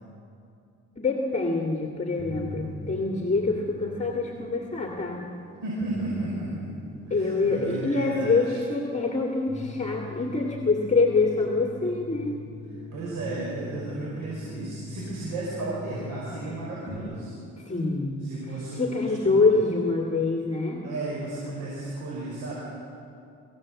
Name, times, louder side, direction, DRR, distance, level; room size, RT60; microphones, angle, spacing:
voice 1, 1.0-5.2 7.1-12.4 17.5-18.3 18.8-20.8, left 3 dB, 25° left, 1 dB, 2.3 m, -25 dB
sound 1, 2.2-17.0, left 1 dB, ahead, 4.8 m, -42 dB
voice 2, 5.6-6.8 7.1-8.6 12.9-17.7 18.2-19.6 20.8-22.5, right 2 dB, 90° right, -5 dB, 5.3 m, -34 dB
24.0 x 16.0 x 7.7 m, 2.6 s
cardioid pair, 90°, 30 cm